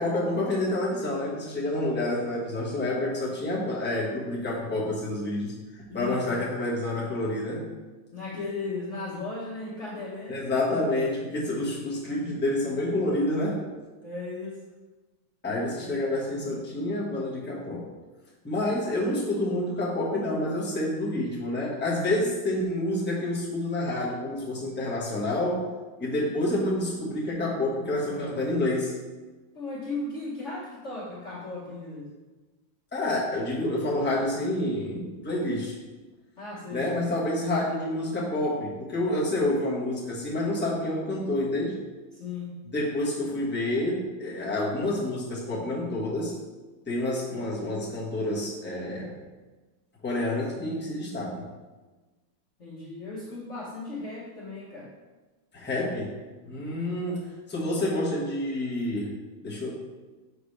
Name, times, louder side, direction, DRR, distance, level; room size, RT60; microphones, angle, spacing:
voice 1, 0.0-7.6 10.3-13.6 15.4-17.9 18.4-25.7 26.0-28.9 32.9-35.7 36.7-41.8 42.7-46.3 46.9-49.1 50.0-51.5 55.5-56.1 56.4-59.1 59.4-59.7, left 1 dB, 5° left, -6 dB, 1.0 m, -28 dB
voice 2, 5.9-6.4 8.1-10.4 14.0-14.6 29.5-32.1 36.4-37.0 42.1-42.5 52.6-54.9, left 3 dB, 45° left, -9 dB, 1.4 m, -36 dB
6.2 x 5.0 x 3.2 m, 1.2 s
omnidirectional pair, 2.1 m